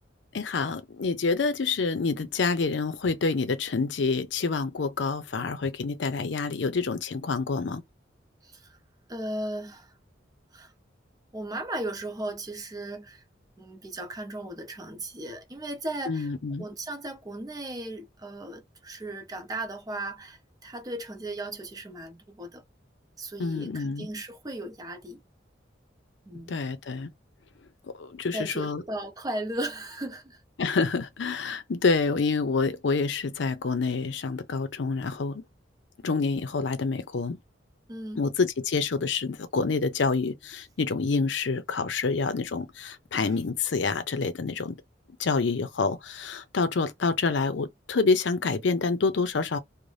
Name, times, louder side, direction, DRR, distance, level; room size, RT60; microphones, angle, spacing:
voice 1, 0.3-7.8 16.1-16.6 23.4-24.1 26.5-27.1 28.0-28.8 30.6-35.4 36.0-37.4 38.2-44.8 45.2-49.6, left 4 dB, 75° left, 0.5 m, -27 dB
voice 2, 8.4-8.8 9.1-9.9 10.5-10.7 11.3-13.2 13.6-16.3 16.6-22.6 23.2-25.2 26.3-26.6 28.3-30.4 37.9-38.2 43.2-43.4, right 1 dB, 20° right, 0.6 m, -36 dB
2.6 x 2.1 x 3.2 m
head